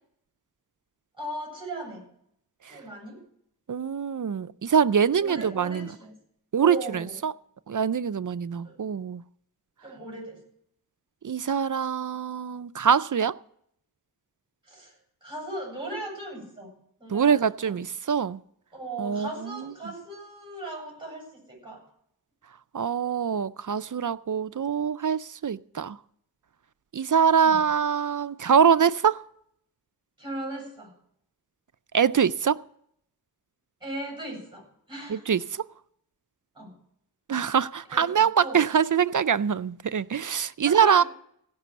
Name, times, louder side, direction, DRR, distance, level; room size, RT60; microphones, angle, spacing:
voice 1, 1.2-2.0 2.7-3.2 5.2-6.1 6.6-7.2 8.6-8.8 9.8-10.4 14.7-14.9 15.2-16.7 17.0-17.8 18.7-21.8 27.4-27.6 30.2-30.9 33.8-35.3 36.5-36.7 37.9-38.1 38.4-38.6 40.6-41.1, right 2 dB, 15° right, 7.8 m, -38 dB
voice 2, 3.7-5.9 6.5-7.3 7.7-9.2 11.2-13.3 17.1-18.4 19.0-19.3 22.7-26.0 26.9-29.2 31.9-32.6 35.1-35.4 37.3-41.0, right 7 dB, 55° right, 0.4 m, -24 dB
16.5 x 6.1 x 8.4 m
wide cardioid pair, 45°, 37 cm